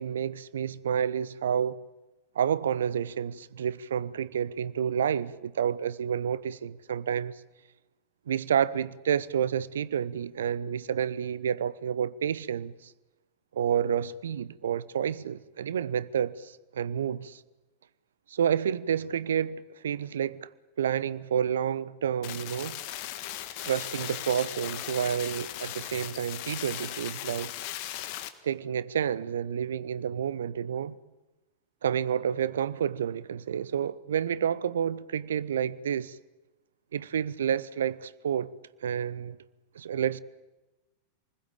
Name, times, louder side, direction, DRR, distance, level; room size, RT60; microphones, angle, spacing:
voice 1, 0.0-1.8 2.3-7.4 8.3-12.9 13.5-17.4 18.3-20.5 20.8-22.8 23.6-27.5 28.4-31.0 31.8-36.2 36.9-38.5 38.8-39.4 39.7-40.2, right 8 dB, 65° right, 0.8 m, -29 dB
sound 1, 22.2-28.3, left 13 dB, 45° left, 1.7 m, -38 dB
27.5 x 21.0 x 8.9 m
figure-of-eight pair, 90°, 0 cm